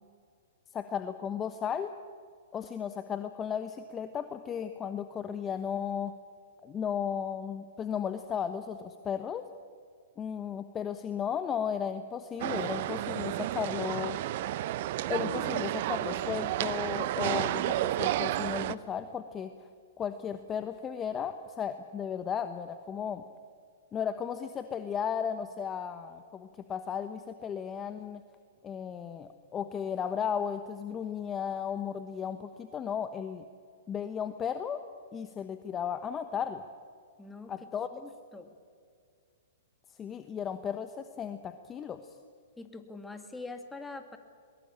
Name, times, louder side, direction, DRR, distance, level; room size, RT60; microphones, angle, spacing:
voice 1, 0.7-1.9 2.5-6.1 6.6-9.5 10.2-14.2 15.1-19.7 20.0-23.2 23.9-28.2 28.6-33.5 33.9-34.8 35.1-36.6 37.5-37.9 39.9-42.1, left 8 dB, 20° left, 9 dB, 1.1 m, -35 dB
sound 1, 12.4-18.7, right 14 dB, 55° right, 0.8 m, -31 dB
voice 2, 37.2-37.5 37.9-38.6 42.6-44.2, left 3 dB, 5° left, 6 dB, 2.3 m, -44 dB
22.0 x 22.0 x 8.8 m, 2.1 s
hypercardioid pair, 120°, 0 cm